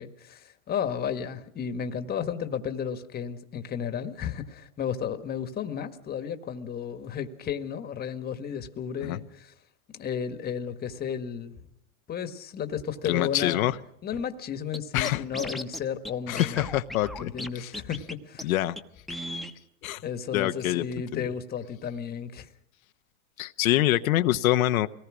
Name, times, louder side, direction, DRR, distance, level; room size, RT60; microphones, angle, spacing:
voice 1, 0.0-9.5 9.9-11.6 12.1-13.7 14.0-16.7 17.2-18.5 20.0-22.5, left 8 dB, 20° left, 9 dB, 1.5 m, -33 dB
voice 2, 13.0-13.8 14.9-15.2 16.3-17.7 18.4-18.7 19.8-20.0 20.3-20.8 21.1-21.3 23.4-24.9, left 15 dB, 80° left, 9 dB, 1.0 m, -25 dB
Scratching (performance technique), 14.7-14.8 15.0-16.1 16.4-17.5 17.7-18.1 18.4-18.5 18.8-18.9 19.1-19.5, left 1 dB, ahead, 1.0 m, -35 dB
24.0 x 18.5 x 6.2 m, 0.76 s
supercardioid pair, 130°, 41 cm